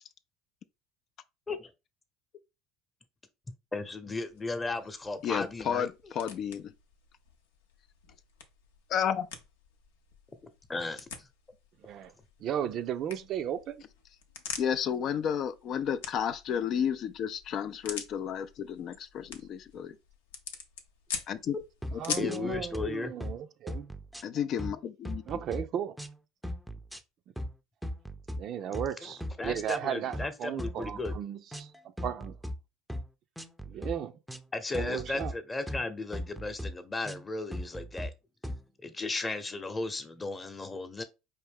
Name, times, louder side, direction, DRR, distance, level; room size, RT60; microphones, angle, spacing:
voice 1, 3.7-5.9 10.7-11.3 22.1-23.1 29.0-31.2 34.5-38.1 38.8-41.0, left 3 dB, 20° left, 0.8 m, -35 dB
sound 1, 4.3-22.5, left 6 dB, 85° left, 0.6 m, -45 dB
voice 2, 5.2-6.7 8.9-9.3 14.6-19.9 21.3-21.6 21.9-22.5 24.2-25.4, left 8 dB, 50° left, 0.4 m, -32 dB
voice 3, 11.8-12.1 12.4-13.8 21.9-23.9 25.3-26.0 28.4-31.7 32.0-32.3 33.7-34.2 34.7-35.3, right 9 dB, 55° right, 0.4 m, -35 dB
sound 2, 21.8-22.0 22.3-22.9 23.2-23.4 23.7-24.8 25.1-25.6 26.0-26.2 26.4-27.0 27.4-27.5 27.8-28.4 28.7-28.9 29.2-29.8 30.1-30.3 30.6-31.2 31.5-32.6 32.9-33.1 33.4-33.9 34.3-34.5 34.7-35.3 35.7-35.8 36.1-36.7 37.1-37.2 37.5-38.1 38.4-38.6, equal, ahead, 0.5 m, -38 dB
4.6 x 2.7 x 3.5 m
hypercardioid pair, 80°, 0 cm